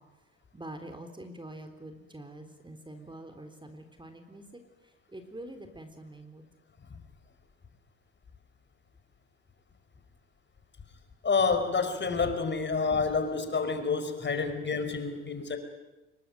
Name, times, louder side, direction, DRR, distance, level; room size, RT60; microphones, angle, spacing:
voice 1, 0.5-4.4 5.1-6.5, right 1 dB, 15° right, 7 dB, 3.9 m, -45 dB
voice 2, 11.2-15.6, left 4 dB, 30° left, 8 dB, 4.9 m, -28 dB
26.0 x 22.5 x 9.4 m, 1.0 s
hypercardioid pair, 60°, 36 cm